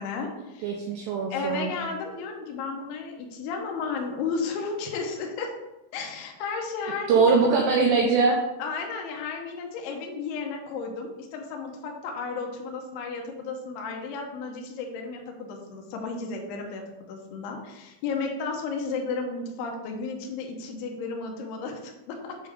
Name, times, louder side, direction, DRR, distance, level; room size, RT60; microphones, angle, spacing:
voice 1, 0.0-0.7 1.3-5.5 5.9-7.3 8.6-22.5, left 4 dB, 75° left, 2 dB, 2.5 m, -33 dB
voice 2, 0.6-1.7 7.1-8.4, right 4 dB, 80° right, 0 dB, 2.6 m, -22 dB
7.3 x 3.4 x 5.0 m, 0.99 s
omnidirectional pair, 5.6 m